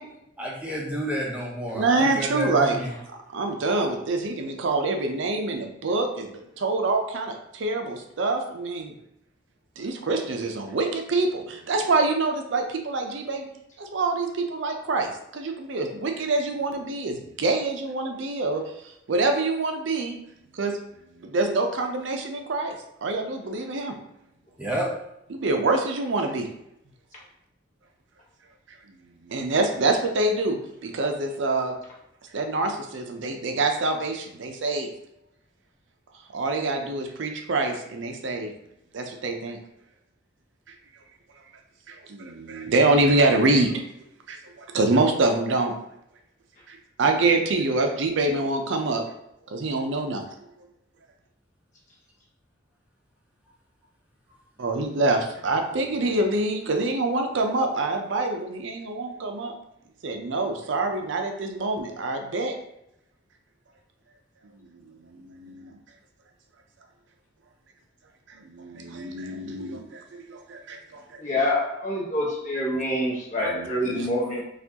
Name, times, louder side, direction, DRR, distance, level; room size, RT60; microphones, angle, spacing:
voice 1, 0.4-2.9 24.6-24.9 56.1-56.2, equal, 5° right, -4 dB, 0.6 m, -30 dB
voice 2, 1.7-2.8 3.3-8.9 9.8-13.5 13.8-18.6 19.1-20.2 20.5-20.7 21.2-22.7 23.0-23.9 25.3-26.5 29.2-31.7 32.3-34.9 36.3-38.5 38.9-39.6 41.9-43.8 44.3-45.7 46.7-49.0 49.5-50.2 54.6-59.5 60.0-62.5 65.0-65.7 68.5-70.0 70.3-71.2 73.5-74.1, right 2 dB, 65° right, 4 dB, 0.5 m, -25 dB
voice 3, 71.2-74.4, left 1 dB, 40° left, -4 dB, 1.1 m, -26 dB
4.3 x 2.4 x 2.8 m, 0.80 s
head